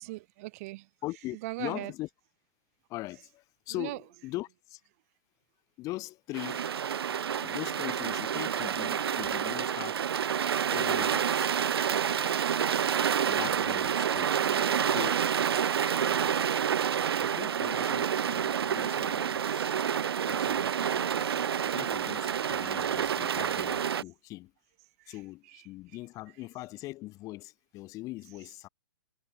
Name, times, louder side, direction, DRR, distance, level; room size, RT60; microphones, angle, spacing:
voice 1, 0.0-0.9 1.4-1.9 3.7-4.0 11.7-11.8 12.3-12.5 14.4-15.0 15.6-15.9 16.6-16.8 19.7-20.1 21.2-21.4 22.5-22.6 23.1-23.2 25.1-25.2 25.5-25.6, right 21 dB, 40° right, 3.6 m, -42 dB
voice 2, 1.0-2.1 2.9-4.8 5.8-6.6 7.4-10.0 10.7-11.5 13.3-14.4 14.8-15.2 16.1-16.6 17.2-19.7 20.2-24.5 25.1-28.7, left 18 dB, 25° left, 3.3 m, -41 dB
sound 1, 6.3-24.0, right 8 dB, 80° right, 0.5 m, -28 dB
hypercardioid pair, 140°, 13 cm